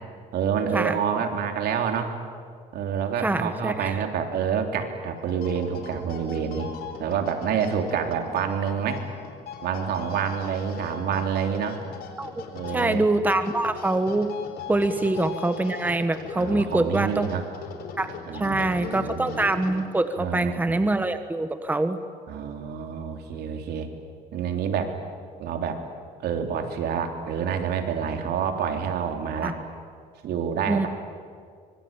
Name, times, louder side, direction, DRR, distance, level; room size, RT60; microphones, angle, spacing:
voice 1, 0.3-2.1 2.7-9.0 9.6-11.8 12.5-13.1 14.8-14.9 16.3-17.5 18.3-19.4 20.2-20.9 22.3-23.9 24.3-24.9 25.4-25.8 26.2-29.6 30.2-30.9, right 7 dB, 70° right, 4 dB, 3.4 m, -28 dB
voice 2, 3.2-4.0 12.2-12.3 12.7-14.3 14.7-17.3 18.0-22.0 29.4-29.5 30.7-30.9, right 2 dB, 10° right, 9 dB, 1.3 m, -24 dB
sound 1, 5.2-20.1, left 6 dB, 65° left, 4.3 m, -39 dB
25.0 x 24.5 x 9.0 m, 2.1 s
cardioid pair, 110°, 17 cm